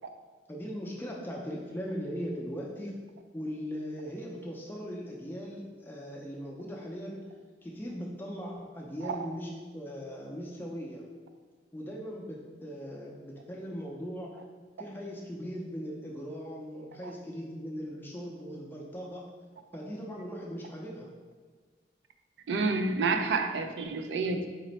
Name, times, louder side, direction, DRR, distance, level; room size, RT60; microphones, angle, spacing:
voice 1, 0.5-3.0 3.3-7.3 7.6-11.0 11.7-14.4 14.8-19.3 19.7-21.1, equal, 10° left, -3 dB, 0.4 m, -39 dB
voice 2, 22.5-24.5, right 4 dB, 85° right, 7 dB, 0.4 m, -29 dB
4.1 x 2.0 x 3.9 m, 1.4 s
head